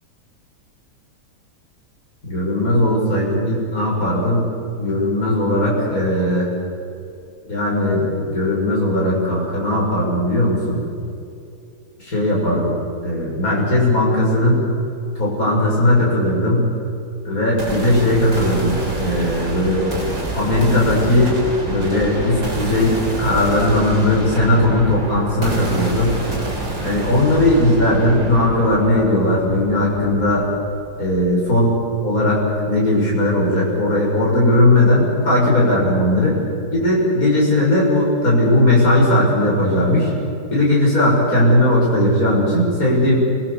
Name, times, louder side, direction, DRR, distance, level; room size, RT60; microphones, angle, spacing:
voice 1, 2.2-4.5 4.8-6.5 7.5-10.8 12.0-14.6 15.2-16.7 17.2-19.9 20.3-21.4 21.6-26.1 26.8-30.5 31.0-36.3 36.7-40.1 40.5-43.3, left 1 dB, 55° left, -4 dB, 7.3 m, -17 dB
sound 1, 17.6-31.5, right 1 dB, 55° right, 4.1 m, -28 dB
28.0 x 21.5 x 7.1 m, 2.5 s
omnidirectional pair, 1.8 m